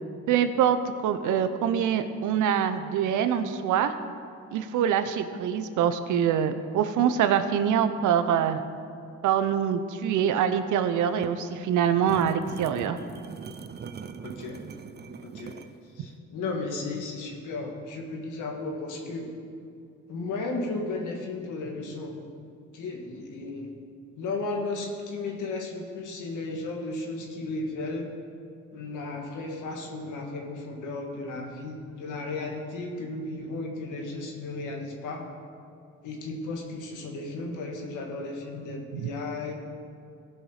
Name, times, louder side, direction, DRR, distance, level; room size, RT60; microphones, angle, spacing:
voice 1, 0.3-0.8 1.0-3.9 4.5-8.6 9.2-13.0 38.9-39.1, right 8 dB, 80° right, 9 dB, 0.8 m, -24 dB
sound 1, 11.0-15.8, right 6 dB, 35° right, 0.6 m, -41 dB
voice 2, 14.2-14.6 15.3-15.5 16.0-19.3 20.1-22.1 22.7-23.7 24.2-28.1 28.7-35.2 36.0-39.5, left 3 dB, 80° left, 1 dB, 1.9 m, -34 dB
16.5 x 5.8 x 5.0 m, 2.5 s
cardioid pair, 90°, 30 cm